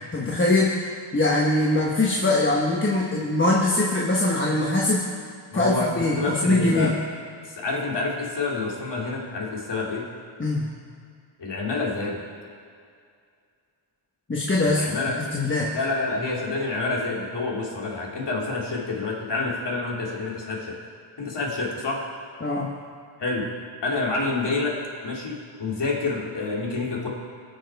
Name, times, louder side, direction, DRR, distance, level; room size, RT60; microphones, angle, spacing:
voice 1, 0.1-0.7 1.1-5.0 5.5-6.9 10.4-10.6 14.3-15.7 22.4-22.7, left 2 dB, 25° left, -3 dB, 1.3 m, -22 dB
voice 2, 5.5-6.9 7.4-10.1 11.4-12.3 14.6-15.1 15.7-20.7 21.2-22.0 23.2-23.5 23.8-24.8 25.0-27.1, left 3 dB, 55° left, -3 dB, 2.8 m, -28 dB
19.5 x 6.7 x 4.7 m, 2.2 s
cardioid pair, 85°, 50 cm